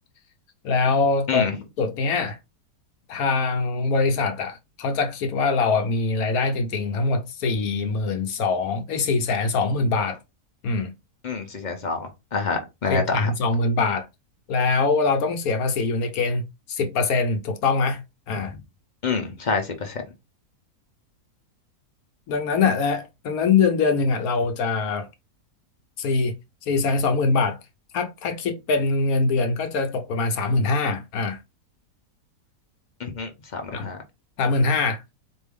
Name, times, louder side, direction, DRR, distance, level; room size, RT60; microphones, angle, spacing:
voice 1, 0.6-1.4 1.8-2.4 3.1-10.2 10.6-10.9 12.9-14.1 14.5-18.0 18.3-18.5 22.3-25.1 26.0-26.3 26.6-27.6 27.9-31.4 33.7-33.9 34.4-35.0, left 4 dB, 70° left, 1.1 m, -23 dB
voice 2, 11.2-13.3 19.0-19.9 33.0-34.0, left 4 dB, 50° left, 0.5 m, -27 dB
4.3 x 2.6 x 3.5 m
omnidirectional pair, 1.7 m